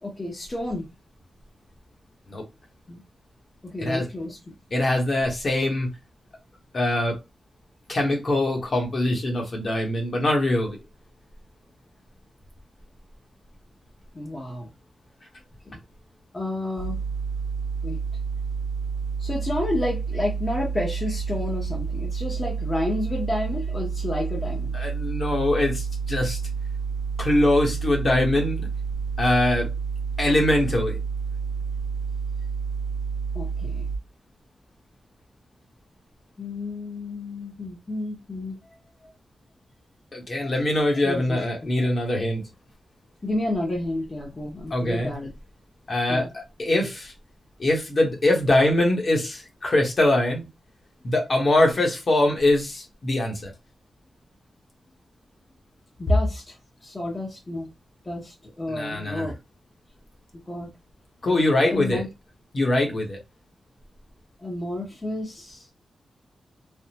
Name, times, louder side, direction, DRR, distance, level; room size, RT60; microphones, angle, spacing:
voice 1, 0.0-0.9 2.9-3.0 3.6-4.4 14.1-14.7 15.6-15.8 16.3-17.0 17.8-18.0 19.2-24.8 33.3-33.9 36.4-38.6 41.0-41.7 43.2-45.3 46.1-46.3 56.0-56.6 56.8-57.7 58.0-59.4 60.5-60.7 61.2-61.3 61.7-62.1 64.4-65.7, left 1 dB, 25° left, 0.7 m, -30 dB
voice 2, 4.7-5.9 6.7-7.2 7.9-10.8 24.7-26.4 27.2-28.7 29.2-29.7 30.2-31.0 40.1-42.4 44.7-45.1 45.9-47.1 47.6-50.5 51.0-53.5 58.7-59.3 61.2-62.0 62.5-63.2, left 1 dB, 45° left, 1.0 m, -23 dB
sound 1, 16.8-34.0, right 5 dB, 20° right, 0.5 m, -29 dB
3.4 x 2.0 x 2.8 m
wide cardioid pair, 150°, 0 cm